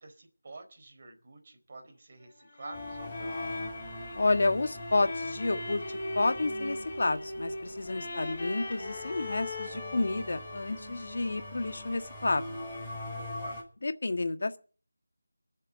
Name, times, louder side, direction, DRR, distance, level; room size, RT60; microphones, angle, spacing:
voice 1, 0.0-3.4 7.8-8.2 13.0-13.6, right 3 dB, 35° right, 4.1 m, -49 dB
sound 1, 2.2-13.1, left 2 dB, 35° left, 3.8 m, -40 dB
sound 2, 2.7-13.6, left 1 dB, ahead, 7.1 m, -44 dB
voice 2, 4.1-5.8 6.1-12.6 13.8-14.6, left 2 dB, 55° left, 1.6 m, -30 dB
22.5 x 7.6 x 7.9 m
figure-of-eight pair, 170°, 0 cm